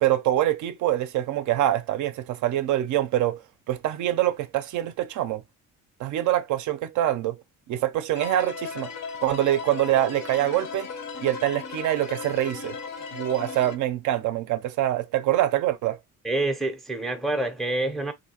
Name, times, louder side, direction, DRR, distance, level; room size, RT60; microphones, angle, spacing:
voice 1, 0.0-3.4 3.7-5.4 6.0-7.4 7.7-8.9 9.2-10.9 11.2-12.8 13.1-16.0, right 13 dB, 65° right, 0.5 m, -25 dB
sound 1, 8.1-13.8, left 5 dB, 55° left, 0.6 m, -36 dB
voice 2, 16.2-18.1, right 2 dB, ahead, 0.5 m, -27 dB
3.1 x 2.6 x 2.7 m
cardioid pair, 110°, 33 cm